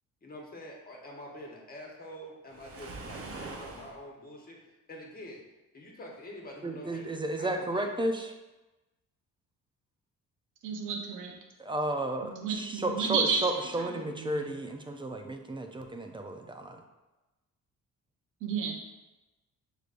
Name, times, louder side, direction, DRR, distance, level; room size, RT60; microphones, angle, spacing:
voice 1, 0.2-4.6 4.9-5.4 5.7-7.1 7.4-7.9, left 1 dB, 30° left, -1 dB, 1.2 m, -46 dB
Waves surf, 2.5-4.0, right 3 dB, 50° right, 0.8 m, -42 dB
voice 2, 6.6-8.3 11.6-16.8, right 1 dB, 15° right, 4 dB, 0.5 m, -33 dB
voice 3, 10.6-11.4 12.2-14.5 18.4-18.8, right 5 dB, 80° right, 1 dB, 0.9 m, -32 dB
6.5 x 3.2 x 2.5 m, 1.1 s
cardioid pair, 90°, 30 cm